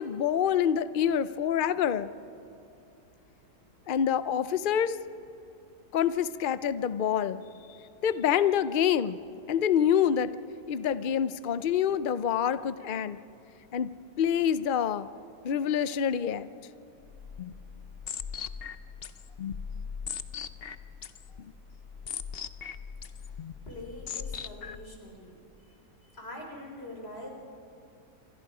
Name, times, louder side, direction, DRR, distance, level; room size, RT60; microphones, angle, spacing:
voice 1, 0.0-2.1 3.9-5.0 5.9-7.4 8.0-9.2 9.5-10.3 10.7-13.2 13.7-13.9 14.2-15.1 15.4-16.5, left 8 dB, 85° left, 14 dB, 0.4 m, -26 dB
sound 1, 17.0-25.0, left 7 dB, 55° left, 0.7 m, -39 dB
voice 2, 23.7-25.3 26.1-27.3, left 1 dB, 35° left, 1 dB, 4.3 m, -43 dB
28.0 x 25.5 x 4.9 m, 2.9 s
omnidirectional pair, 1.7 m